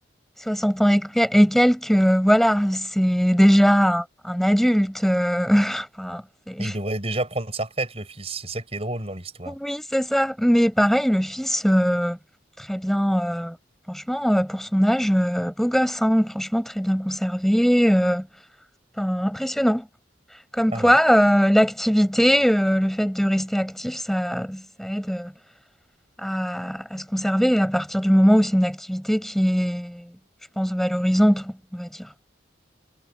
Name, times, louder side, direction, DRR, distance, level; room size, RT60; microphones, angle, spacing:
voice 1, 0.4-6.7 9.5-12.2 12.6-13.6 13.9-18.3 19.0-19.9 20.5-25.3 26.2-30.1 30.6-32.1, equal, ahead, 5.3 m, -21 dB
voice 2, 6.6-9.5 20.7-20.9, right 2 dB, 30° right, 6.7 m, -30 dB
head